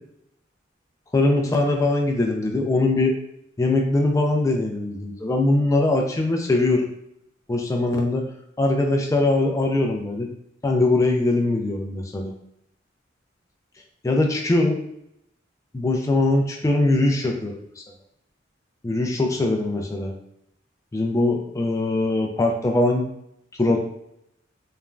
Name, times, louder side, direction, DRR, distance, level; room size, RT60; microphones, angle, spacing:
voice 1, 1.1-3.1 3.6-6.9 7.5-8.2 8.6-10.3 10.6-12.3 14.0-14.8 15.7-17.6 18.8-20.1 20.9-23.1 23.6-23.8, left 2 dB, 15° left, 1 dB, 0.3 m, -21 dB
3.0 x 2.2 x 2.4 m, 0.76 s
head